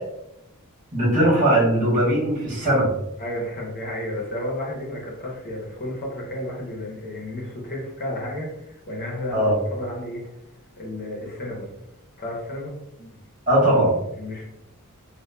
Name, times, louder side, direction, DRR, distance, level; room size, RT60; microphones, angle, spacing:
voice 1, 0.9-2.9 9.3-9.6 13.5-14.0, right 1 dB, 35° right, -8 dB, 1.4 m, -19 dB
voice 2, 3.2-10.2 10.8-11.7 12.2-12.7 13.6-14.5, left 1 dB, 45° left, -3 dB, 0.8 m, -32 dB
2.8 x 2.2 x 2.2 m, 0.85 s
head